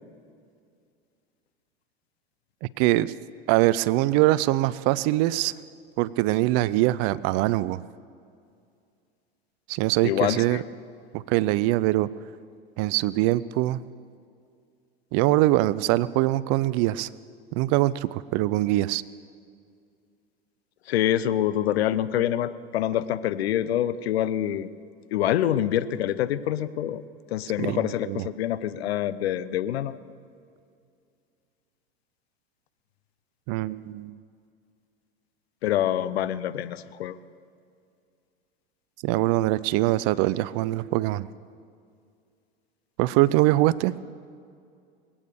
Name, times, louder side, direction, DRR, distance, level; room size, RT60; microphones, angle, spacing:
voice 1, 2.6-3.1 3.5-5.5 6.0-7.8 9.7-10.6 11.1-12.1 12.8-13.8 15.1-17.1 17.5-19.0 27.6-28.3 33.5-34.1 39.0-41.3 43.0-43.9, right 17 dB, 50° right, 19 dB, 0.5 m, -23 dB
voice 2, 10.0-10.6 20.9-24.7 25.1-27.0 27.3-30.0 35.6-37.2, left 11 dB, 80° left, 15 dB, 0.6 m, -26 dB
21.5 x 8.8 x 6.7 m, 2.3 s
hypercardioid pair, 85°, 31 cm